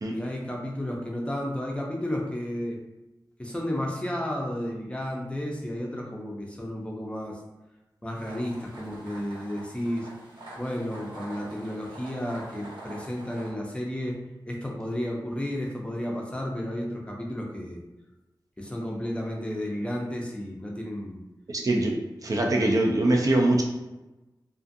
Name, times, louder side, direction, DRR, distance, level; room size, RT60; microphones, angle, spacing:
voice 1, 0.1-2.8 3.4-7.4 8.0-10.1 10.6-14.2 14.5-17.8 18.6-21.2, left 1 dB, 15° left, -1 dB, 0.5 m, -32 dB
sound 1, 8.2-13.5, right 1 dB, 75° right, 0.8 m, -45 dB
voice 2, 21.5-21.9 22.2-23.6, right 1 dB, 45° right, 0 dB, 0.4 m, -22 dB
2.4 x 2.4 x 2.6 m, 1.0 s
wide cardioid pair, 75°, 8 cm